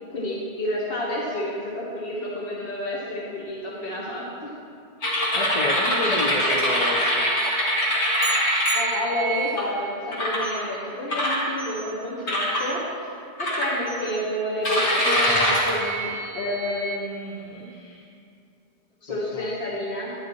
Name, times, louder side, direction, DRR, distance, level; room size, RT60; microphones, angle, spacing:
voice 1, 0.1-4.5 8.7-12.8 13.4-18.0 19.0-20.1, left 1 dB, 60° left, -5 dB, 1.5 m, -30 dB
sound 1, 5.0-9.6 10.1-10.5 11.1-11.8 12.3-12.7 13.4-14.1 14.6-17.0, equal, 85° left, 2.0 m, -24 dB
voice 2, 5.3-7.3 19.1-19.6, left 3 dB, 40° left, 2 dB, 0.7 m, -31 dB
sound 2, 8.2-9.6, right 7 dB, 65° right, 0.7 m, -34 dB
11.0 x 10.5 x 3.0 m, 2.5 s
omnidirectional pair, 1.1 m